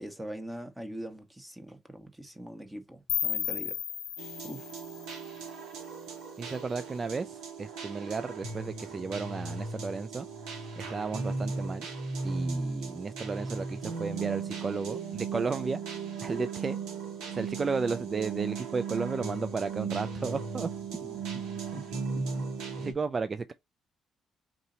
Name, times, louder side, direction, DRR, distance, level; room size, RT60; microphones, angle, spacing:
voice 1, 0.0-3.8 4.4-4.7 21.0-21.4 21.7-22.5, right 1 dB, 10° right, 1.1 m, -43 dB
sound 1, 3.1-6.0, left 10 dB, 65° left, 0.4 m, -35 dB
sound 2, 4.2-22.9, right 4 dB, 80° right, 1.1 m, -36 dB
voice 2, 6.4-10.3 10.8-11.9 12.2-15.8 16.2-16.8 17.3-20.7 22.8-23.5, right 4 dB, 40° right, 0.4 m, -33 dB
3.8 x 2.7 x 4.1 m
supercardioid pair, 55°, 0 cm